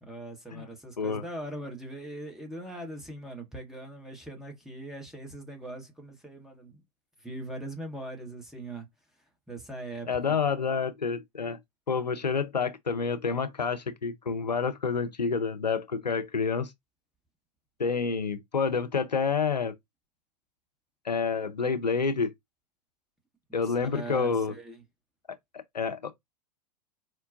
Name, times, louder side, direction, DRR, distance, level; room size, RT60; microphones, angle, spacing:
voice 1, 0.0-6.8 7.2-8.9 9.5-10.4 23.6-24.8, right 1 dB, ahead, 0.9 m, -41 dB
voice 2, 10.1-11.6 11.9-16.7 17.8-19.7 21.0-22.3 23.5-24.5 25.5-26.1, left 5 dB, 80° left, 0.7 m, -28 dB
4.5 x 2.2 x 2.5 m
figure-of-eight pair, 95°, 21 cm